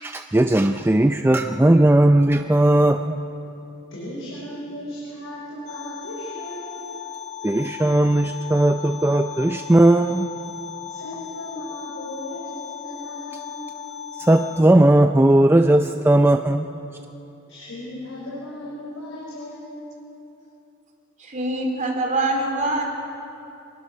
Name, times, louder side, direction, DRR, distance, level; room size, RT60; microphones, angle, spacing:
voice 1, 0.0-3.2 7.4-10.3 14.2-16.8, right 1 dB, 10° right, 6 dB, 0.4 m, -17 dB
voice 2, 3.9-6.7 10.9-13.8 17.5-19.9, left 1 dB, 70° left, -6 dB, 5.7 m, -36 dB
sound 1, 5.7-14.6, left 9 dB, 35° left, 0.9 m, -36 dB
voice 3, 21.2-23.0, right 2 dB, 40° right, 1 dB, 3.5 m, -24 dB
26.0 x 20.0 x 6.4 m, 2.9 s
head